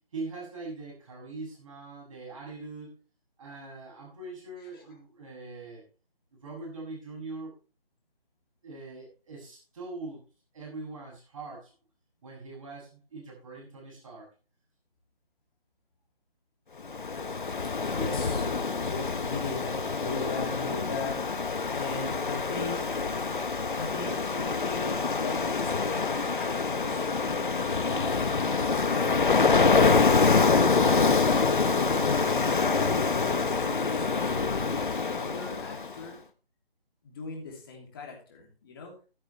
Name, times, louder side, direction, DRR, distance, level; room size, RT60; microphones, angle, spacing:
voice 1, 0.1-3.0 3.4-5.8 6.3-7.5 8.6-10.2 10.5-11.7 12.2-14.3 17.9-18.1, right 3 dB, 35° right, -2 dB, 7.3 m, -42 dB
Ocean, 16.8-36.0, left 4 dB, 55° left, 1.3 m, -26 dB
voice 2, 17.9-18.5 18.9-22.9 23.8-27.1 27.7-31.8 32.8-36.2 37.0-38.9, left 3 dB, 25° left, 0 dB, 3.0 m, -39 dB
13.0 x 12.0 x 3.4 m, 0.35 s
figure-of-eight pair, 160°, 30 cm